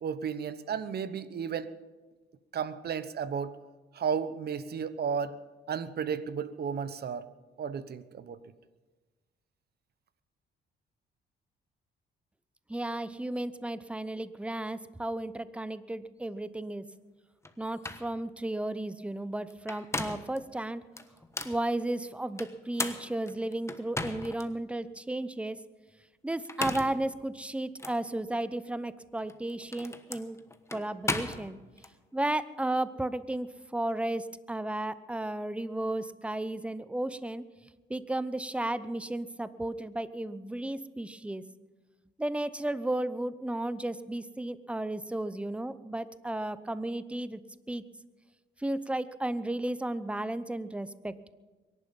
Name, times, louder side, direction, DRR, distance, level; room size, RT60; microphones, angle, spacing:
voice 1, 0.0-1.7 2.5-3.5 3.9-5.3 5.7-7.3 7.6-8.4, right 7 dB, 55° right, 14 dB, 1.0 m, -33 dB
voice 2, 12.7-16.8 17.6-20.8 21.4-25.6 26.2-30.4 30.7-31.6 32.1-37.4 37.9-41.4 42.2-47.4 47.7-47.8 48.6-51.3, right 1 dB, 5° right, 15 dB, 0.7 m, -34 dB
sound 1, 17.4-17.5 17.8-18.1 19.5-20.4 21.0-21.6 22.4-24.5 25.0-25.1 26.3-27.0 27.8-28.0 29.2-31.9, left 2 dB, 15° left, 1.2 m, -36 dB
23.5 x 11.0 x 5.4 m, 1.3 s
cardioid pair, 90°, 20 cm